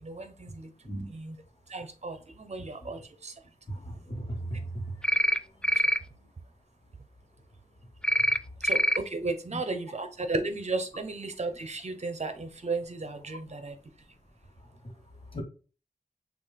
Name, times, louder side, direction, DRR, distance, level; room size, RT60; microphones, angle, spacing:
voice 1, 0.0-0.7 1.1-1.4 1.7-3.3 8.6-13.8, right 3 dB, 45° right, 9 dB, 0.8 m, -34 dB
voice 2, 3.7-4.9 15.3-15.4, right 1 dB, 35° left, 1 dB, 1.5 m, -36 dB
sound 1, 5.0-5.4 5.6-6.0 8.0-8.4 8.6-9.0, equal, 5° left, 0.3 m, -24 dB
6.1 x 2.5 x 3.4 m, 0.36 s
wide cardioid pair, 85°, 15 cm